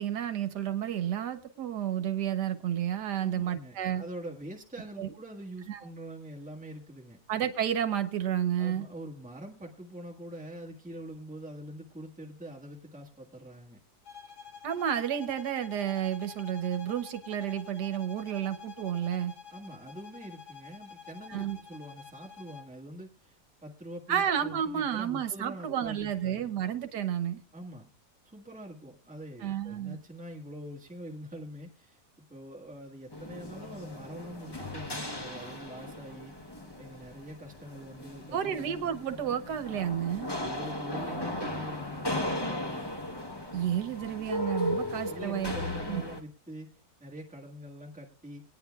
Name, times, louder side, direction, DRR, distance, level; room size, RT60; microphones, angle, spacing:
voice 1, 0.0-4.0 5.0-5.1 5.7-5.8 7.3-8.9 14.6-19.3 21.3-21.6 24.1-27.4 29.4-30.0 38.3-40.3 43.5-45.5 45.9-46.0, right 10 dB, 85° right, 9 dB, 1.5 m, -31 dB
voice 2, 3.2-7.2 8.6-13.8 19.5-26.5 27.5-27.9 28.2-36.3 36.8-38.7 40.4-42.9 44.7-48.4, right 1 dB, 5° right, -1 dB, 1.4 m, -44 dB
sound 1, 14.0-22.8, left 7 dB, 75° left, 1.5 m, -49 dB
sound 2, 33.1-46.2, left 1 dB, 20° left, 0.7 m, -37 dB
21.5 x 9.4 x 2.3 m, 0.38 s
omnidirectional pair, 1.7 m